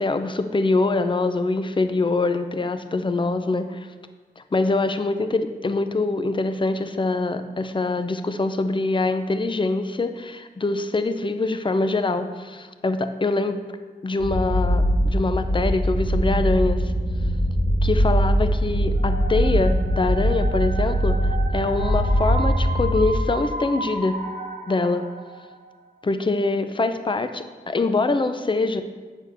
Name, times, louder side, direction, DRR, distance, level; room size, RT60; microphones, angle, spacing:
voice 1, 0.0-3.9 4.4-13.6 14.0-16.9 17.8-24.2 24.7-25.1 26.0-28.8, left 3 dB, 30° left, 9 dB, 0.6 m, -24 dB
sound 1, 14.2-23.2, equal, 70° left, 2.6 m, -22 dB
sound 2, 19.0-25.8, right 2 dB, 60° right, 1.2 m, -34 dB
8.9 x 4.4 x 6.9 m, 1.4 s
cardioid pair, 60°, 16 cm